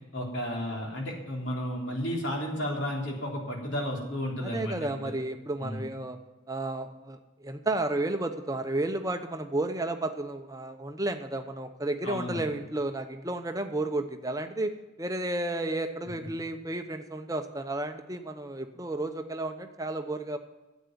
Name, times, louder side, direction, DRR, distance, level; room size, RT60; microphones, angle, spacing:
voice 1, 0.1-5.1 5.6-5.8 12.0-12.4, equal, 60° left, -1 dB, 3.5 m, -33 dB
voice 2, 4.5-6.2 6.5-14.7 15.0-20.4, right 2 dB, 15° right, 6 dB, 0.9 m, -32 dB
10.0 x 8.2 x 9.4 m, 1.1 s
head